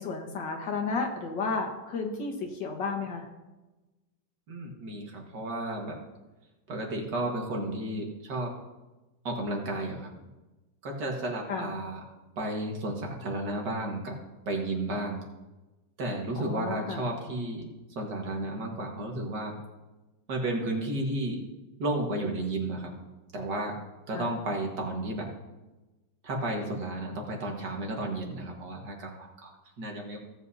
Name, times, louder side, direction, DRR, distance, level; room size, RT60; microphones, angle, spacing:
voice 1, 0.0-3.3 11.5-11.7 16.4-17.0 24.1-24.3, left 4 dB, 75° left, 2 dB, 2.0 m, -32 dB
voice 2, 4.5-6.0 6.7-8.6 9.2-10.1 10.8-12.0 12.4-14.2 14.5-15.3 16.0-17.6 18.0-19.6 20.3-21.5 21.8-22.9 23.3-25.3 26.2-29.5 29.8-30.2, right 1 dB, 65° right, 0 dB, 2.2 m, -33 dB
17.0 x 7.9 x 2.8 m, 1.1 s
omnidirectional pair, 2.0 m